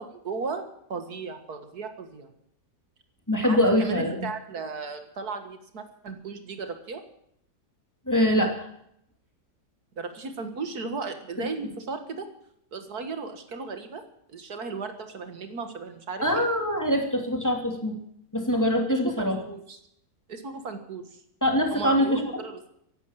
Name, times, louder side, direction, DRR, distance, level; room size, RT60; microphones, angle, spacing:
voice 1, 0.0-2.3 3.4-7.0 10.0-12.3 12.7-14.0 14.3-16.5 19.0-19.8 20.3-21.2 21.7-22.6, right 4 dB, 70° right, 8 dB, 2.2 m, -36 dB
voice 2, 3.3-4.3 8.1-8.7 11.4-11.5 16.2-18.0 18.3-19.4 21.4-22.2, equal, 10° left, 3 dB, 2.8 m, -23 dB
16.0 x 11.5 x 7.4 m, 0.72 s
omnidirectional pair, 1.7 m